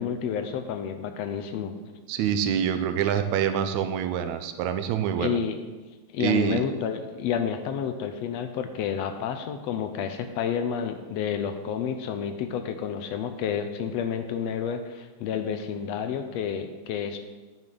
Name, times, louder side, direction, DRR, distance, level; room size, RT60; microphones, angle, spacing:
voice 1, 0.0-1.7 5.2-5.6 6.1-17.2, left 7 dB, 75° left, 8 dB, 1.6 m, -30 dB
voice 2, 2.1-5.4 6.2-6.6, right 8 dB, 80° right, 8 dB, 1.9 m, -26 dB
9.7 x 9.7 x 3.9 m, 1.3 s
omnidirectional pair, 3.4 m